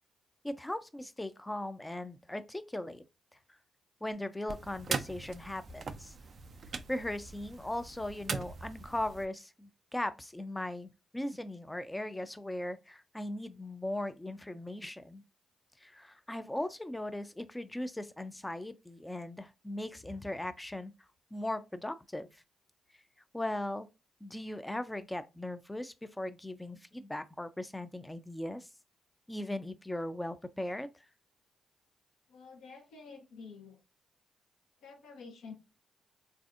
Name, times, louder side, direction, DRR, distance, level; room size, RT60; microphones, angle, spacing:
voice 1, 0.4-3.0 4.0-6.1 6.9-15.2 15.8-20.9 21.3-22.3 23.3-23.9 24.2-28.7 29.3-30.9, left 1 dB, 15° left, 0.5 m, -38 dB
sound 1, 4.5-9.3, right 5 dB, 55° right, 0.4 m, -41 dB
voice 2, 32.3-33.8 34.8-35.5, left 4 dB, 75° left, 0.7 m, -49 dB
3.3 x 2.5 x 2.4 m
hypercardioid pair, 40°, 0 cm